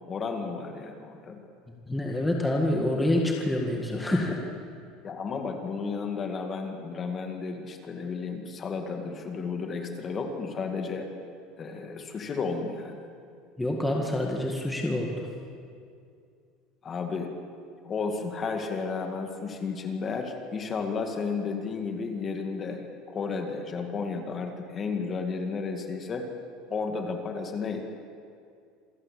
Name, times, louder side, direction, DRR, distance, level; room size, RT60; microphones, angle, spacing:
voice 1, 0.1-1.4 5.0-11.1 11.6-13.1 16.8-17.3 17.8-22.8 23.1-26.3 26.7-27.8, left 4 dB, 25° left, 4 dB, 2.1 m, -33 dB
voice 2, 1.9-4.4 13.6-15.3, left 1 dB, 5° left, 0 dB, 1.8 m, -27 dB
27.0 x 16.0 x 8.4 m, 2.3 s
cardioid pair, 165°, 0 cm